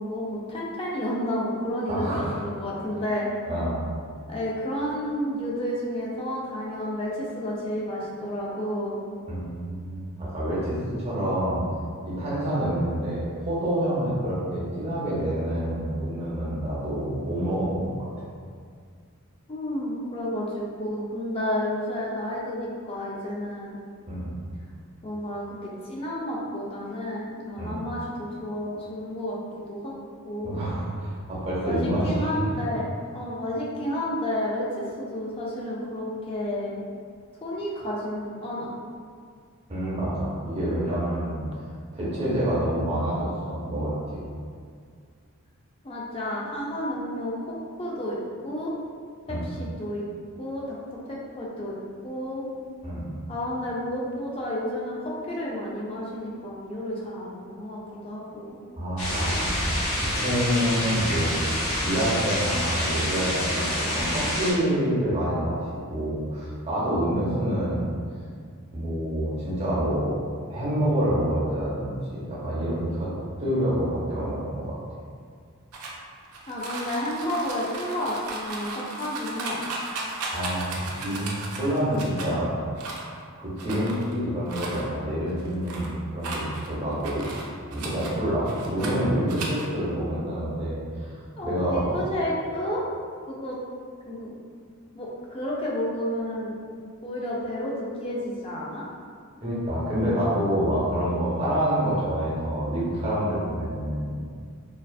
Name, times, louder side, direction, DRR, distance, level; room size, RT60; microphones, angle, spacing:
voice 1, 0.0-3.3 4.3-9.0 19.5-23.8 25.0-29.4 29.7-29.9 30.2-30.5 31.6-32.9 33.1-34.7 35.0-36.7 37.4-38.7 45.8-48.2 48.4-48.7 49.3-50.0 50.4-50.8 51.1-51.8 52.0-52.4 53.3-55.0 55.2-58.6 76.5-79.6 91.4-92.8 93.3-93.6 94.1-94.3 94.9-96.5 97.0-98.8, left 1 dB, 25° left, -5 dB, 0.3 m, -31 dB
voice 2, 1.9-2.4 3.5-3.9 9.3-11.6 12.0-18.1 24.1-24.4 27.6-27.7 30.4-32.3 39.7-41.5 41.9-44.2 49.3-49.4 52.8-53.0 58.8-61.4 61.8-67.9 68.7-70.1 70.4-73.1 73.4-74.8 80.3-82.5 83.4-87.3 87.7-92.0 99.4-104.2, equal, 25° right, -8 dB, 0.7 m, -27 dB
sound 1, 59.0-64.5, left 1 dB, 75° left, 0.7 m, -27 dB
sound 2, 75.7-82.3 82.8-83.2 83.6-84.1 84.5-84.8 85.3-85.9 86.2-88.1 88.5-89.0 89.3-89.7, right 3 dB, 90° right, 0.4 m, -35 dB
2.4 x 2.3 x 2.3 m, 2.1 s
head